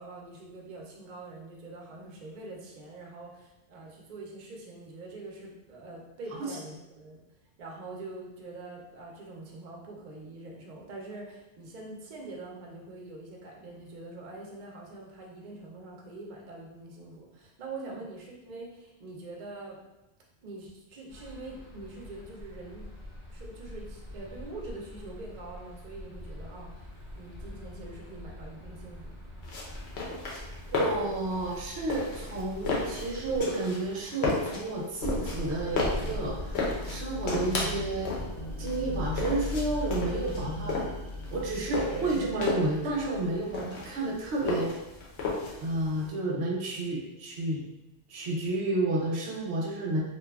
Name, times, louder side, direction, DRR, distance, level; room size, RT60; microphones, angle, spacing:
voice 1, 0.0-7.2 7.6-19.8 20.4-22.9 23.3-29.1, right 2 dB, 55° right, -2 dB, 0.5 m, -44 dB
sound 1, 21.1-33.4, left 1 dB, 10° left, 0.8 m, -45 dB
sound 2, 29.4-46.0, left 3 dB, 80° left, 0.9 m, -34 dB
voice 2, 30.7-38.1 38.6-40.8 41.3-44.7 45.6-47.6 48.1-50.0, right 2 dB, 80° right, -2 dB, 0.9 m, -31 dB
sound 3, 35.0-43.9, left 1 dB, 50° left, 0.7 m, -37 dB
2.7 x 2.2 x 2.3 m, 0.97 s
omnidirectional pair, 1.1 m